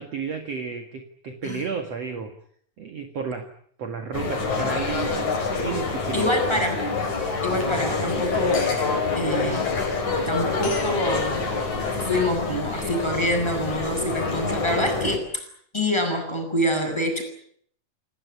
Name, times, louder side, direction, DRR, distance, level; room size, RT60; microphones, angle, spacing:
voice 1, 0.0-2.4 2.8-3.5 3.8-6.3 6.6-6.7, right 5 dB, 50° right, 5 dB, 2.8 m, -32 dB
sound 1, 4.1-15.2, left 4 dB, 55° left, 6.1 m, -26 dB
voice 2, 6.1-6.8 7.4-8.7 9.1-9.7 10.3-11.5 12.0-15.4 15.7-17.2, left 1 dB, 5° left, 4 dB, 8.0 m, -26 dB
28.5 x 19.0 x 9.7 m, 0.64 s
omnidirectional pair, 4.1 m